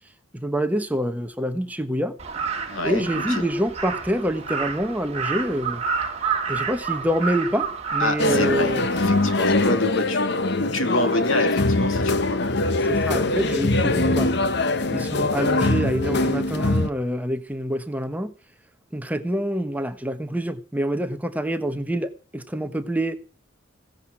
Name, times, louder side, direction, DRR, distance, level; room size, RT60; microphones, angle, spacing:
voice 1, 0.3-2.2 2.8-5.8 6.5-8.9 12.9-14.3 14.9-18.3 18.9-23.2, equal, 10° right, 1.1 m, -26 dB
Crow, 2.2-9.6, right 5 dB, 30° right, 2.4 m, -30 dB
voice 2, 2.7-3.4 8.0-12.6, left 2 dB, 85° left, 2.5 m, -27 dB
sound 1, 8.2-16.9, left 2 dB, 55° left, 1.0 m, -22 dB
16.5 x 10.5 x 6.0 m
head